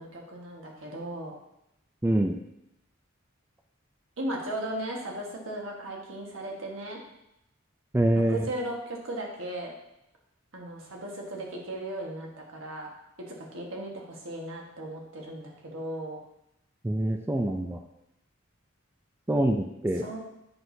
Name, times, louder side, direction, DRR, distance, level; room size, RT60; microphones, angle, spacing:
voice 1, 0.0-1.3 4.2-7.0 8.1-9.7 10.5-12.9 13.3-16.2 20.0-20.2, right 1 dB, 70° right, -1 dB, 1.4 m, -36 dB
voice 2, 2.0-2.4 7.9-8.4 16.8-17.8 19.3-20.1, right 1 dB, 10° right, 4 dB, 0.3 m, -25 dB
7.7 x 6.1 x 2.7 m, 0.83 s
head